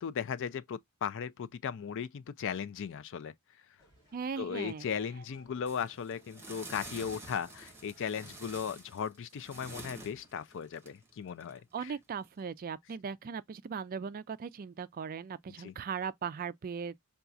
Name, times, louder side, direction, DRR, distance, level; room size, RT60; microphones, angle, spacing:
voice 1, 0.0-3.3 4.4-11.9 15.6-15.7, left 7 dB, 60° left, 0.4 m, -37 dB
sound 1, 3.8-8.8, right 1 dB, 15° left, 1.9 m, -61 dB
voice 2, 4.1-4.9 11.7-16.9, right 6 dB, 40° right, 0.3 m, -38 dB
sound 2, 5.7-12.4, right 2 dB, 10° right, 1.8 m, -49 dB
5.7 x 2.3 x 2.5 m
head